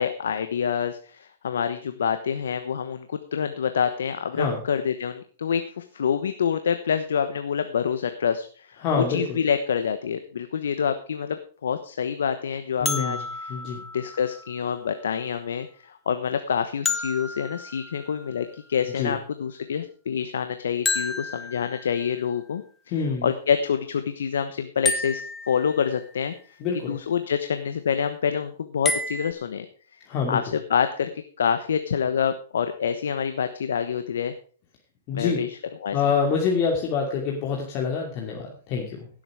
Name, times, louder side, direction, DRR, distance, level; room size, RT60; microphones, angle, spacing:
voice 1, 0.0-13.6 13.9-22.6 23.2-25.2 25.5-26.6 26.9-29.6 29.9-30.0 30.3-31.1 31.4-34.3 35.1-36.0, left 7 dB, 80° left, 9 dB, 1.1 m, -27 dB
voice 2, 8.8-9.4 12.8-13.8 18.9-19.1 22.9-23.3 26.6-27.0 30.1-30.4 35.1-35.4 35.9-39.1, left 5 dB, 40° left, 0 dB, 2.6 m, -26 dB
sound 1, 12.8-14.8 16.8-18.6 20.8-22.2 24.8-26.1 28.8-29.3, left 4 dB, 15° left, 1.3 m, -31 dB
17.0 x 7.9 x 4.9 m, 0.42 s
hypercardioid pair, 140°, 0 cm